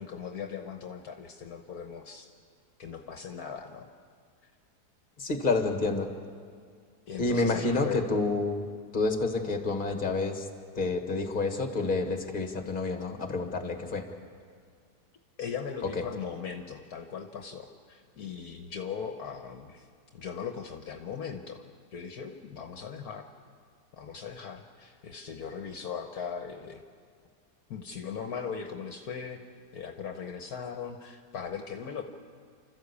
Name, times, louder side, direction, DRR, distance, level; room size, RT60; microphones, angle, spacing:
voice 1, 0.0-2.3 2.8-3.9 4.4-4.5 7.1-8.0 15.4-19.9 20.1-21.6 21.9-23.3 23.9-26.8 27.7-29.4 29.7-32.0, left 7 dB, 65° left, 5 dB, 1.5 m, -39 dB
voice 2, 5.2-6.1 7.2-8.6 8.9-10.5 10.7-14.1 15.9-16.0, left 3 dB, 30° left, 5 dB, 1.9 m, -29 dB
29.5 x 13.5 x 8.4 m, 2.1 s
omnidirectional pair, 1.8 m